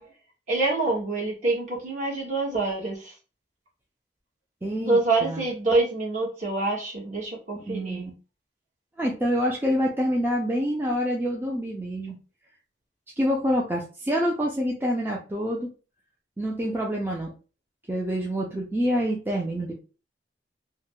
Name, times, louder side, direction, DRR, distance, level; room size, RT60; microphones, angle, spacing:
voice 1, 0.5-3.0 4.8-8.1, right 3 dB, 45° right, -3 dB, 1.2 m, -26 dB
voice 2, 4.6-5.4 7.7-8.1 9.0-12.2 13.2-15.7 16.4-17.3 17.9-19.7, equal, 10° right, -2 dB, 0.4 m, -26 dB
2.7 x 2.1 x 3.6 m, 0.34 s
head